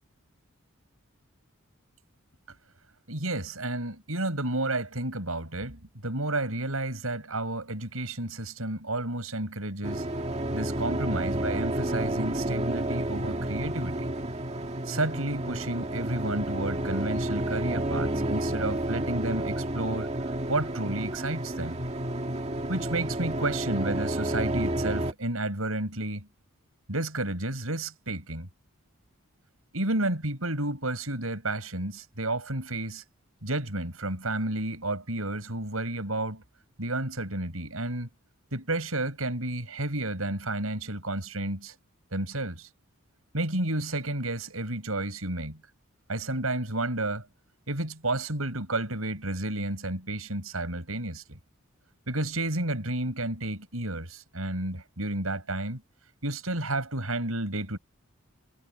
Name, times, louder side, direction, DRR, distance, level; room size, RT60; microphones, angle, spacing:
voice 1, 3.1-10.0 10.5-14.1 14.8-20.1 20.5-21.8 22.7-26.3 26.9-28.5 29.7-33.0 33.4-36.4 36.8-38.1 38.5-41.7 42.1-42.7 43.3-45.6 46.1-47.3 47.7-51.4 52.1-55.8 56.2-57.8, right 2 dB, 85° right, 6.2 m, -31 dB
sound 1, 9.8-25.1, right 1 dB, 30° right, 2.0 m, -30 dB
head